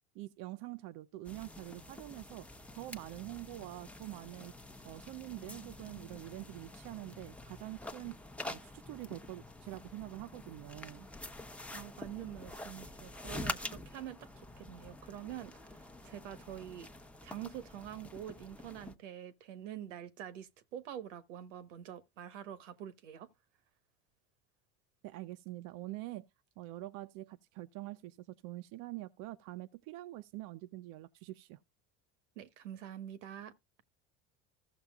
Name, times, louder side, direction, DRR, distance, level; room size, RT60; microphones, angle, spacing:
voice 1, 0.1-4.5 4.8-11.1 25.0-26.3 26.6-31.6, right 17 dB, 60° right, 0.7 m, -45 dB
sound 1, 1.2-18.9, left 1 dB, 5° left, 0.9 m, -47 dB
voice 2, 11.7-15.5 16.0-16.9 17.2-23.3 32.4-33.5, right 10 dB, 85° right, 1.3 m, -46 dB
15.0 x 6.8 x 2.4 m
supercardioid pair, 95°, 36 cm